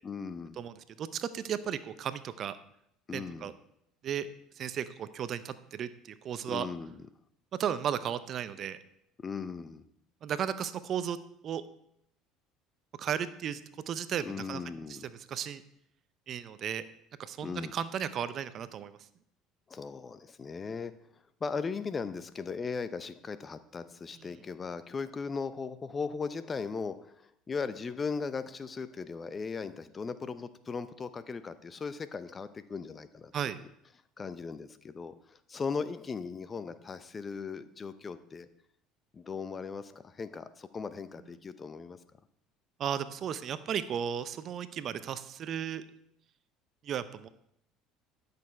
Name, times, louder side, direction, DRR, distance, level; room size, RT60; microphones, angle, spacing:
voice 1, 0.0-0.6 3.1-3.5 6.5-7.0 9.2-9.8 14.2-15.0 17.4-17.7 19.7-20.9 21.4-33.5 34.2-38.5 39.1-42.0, left 5 dB, 30° left, 13 dB, 0.7 m, -38 dB
voice 2, 0.6-2.6 3.1-3.5 4.0-4.3 4.6-5.9 6.2-6.7 7.6-8.8 10.2-11.2 11.4-11.6 13.0-13.6 13.9-14.6 15.3-15.6 16.3-16.8 17.2-19.0 33.3-33.6 42.8-45.8 46.8-47.3, right 9 dB, 50° right, 14 dB, 0.6 m, -34 dB
10.5 x 6.7 x 4.5 m, 0.74 s
hypercardioid pair, 80°, 0 cm